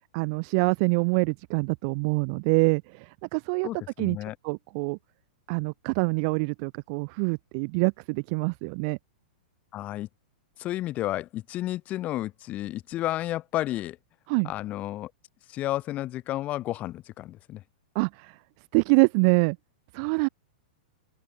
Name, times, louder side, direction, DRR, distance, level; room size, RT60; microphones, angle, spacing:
voice 1, 0.1-3.7 4.0-4.2 4.4-5.0 5.5-9.0 14.3-14.5 17.9-18.4 18.7-19.6 19.9-20.3, right 35 dB, 45° right, 0.7 m, -25 dB
voice 2, 3.6-4.4 9.7-10.1 10.6-14.0 14.4-15.1 15.5-17.6, left 15 dB, 35° left, 7.8 m, -32 dB
open air
hypercardioid pair, 130°, 4 cm